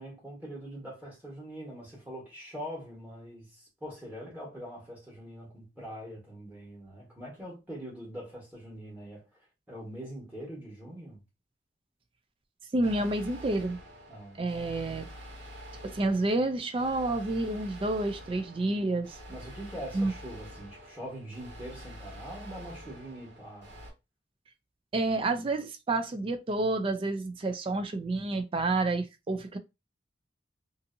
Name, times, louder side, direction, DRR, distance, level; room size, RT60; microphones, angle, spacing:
voice 1, 0.0-11.2 14.1-14.4 19.3-23.8, equal, 10° right, 1.2 m, -43 dB
voice 2, 12.7-13.8 14.4-15.1 15.8-19.2 19.9-20.1 24.9-29.6, right 2 dB, 30° right, 0.3 m, -29 dB
sound 1, 12.8-23.9, equal, 85° right, 1.4 m, -47 dB
2.6 x 2.6 x 2.5 m
head